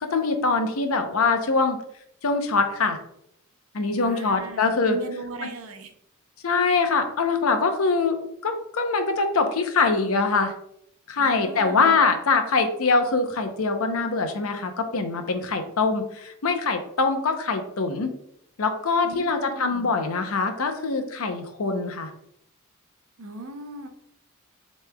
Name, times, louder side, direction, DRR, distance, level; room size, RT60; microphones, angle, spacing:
voice 1, 0.0-1.8 2.2-3.0 3.7-5.0 6.4-10.5 11.1-18.1 18.6-22.1, left 4 dB, 70° left, 6 dB, 0.7 m, -23 dB
voice 2, 4.0-5.9 11.2-12.0 19.0-20.0 23.2-23.9, right 3 dB, 70° right, 6 dB, 0.6 m, -38 dB
6.9 x 3.1 x 2.2 m, 0.74 s
head